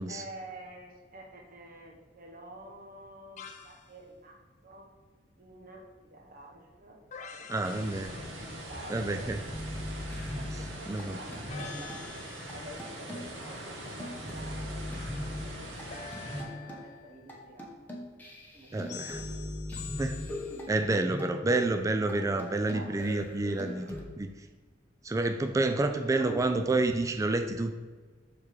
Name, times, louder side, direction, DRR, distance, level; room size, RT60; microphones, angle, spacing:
voice 1, 0.1-4.9 5.4-5.8 6.1-7.0 7.3-9.3 10.3-11.9 12.5-14.9 15.2-16.0 16.3-17.6 18.5-19.0 20.2-21.0 22.7-23.9 25.8-26.7, right 1 dB, 50° right, 1 dB, 1.0 m, -48 dB
sound 1, 3.4-3.9 7.1-8.8 11.5-12.9 15.9-17.4 18.9-20.6, left 6 dB, 40° left, 0.5 m, -46 dB
voice 2, 7.5-8.1 8.9-9.4 10.9-11.2 18.7-19.2 20.0-20.2 20.7-23.8 24.2-24.3 25.0-27.8, right 2 dB, 15° right, 7 dB, 0.3 m, -29 dB
sound 2, 7.6-16.4, right 1 dB, 90° right, 1.3 m, -42 dB
sound 3, 9.5-12.1 12.5-12.6 12.8-16.9 17.3-17.4 17.6-24.0, left 1 dB, 10° left, 0.9 m, -40 dB
6.5 x 3.6 x 4.6 m, 1.4 s
head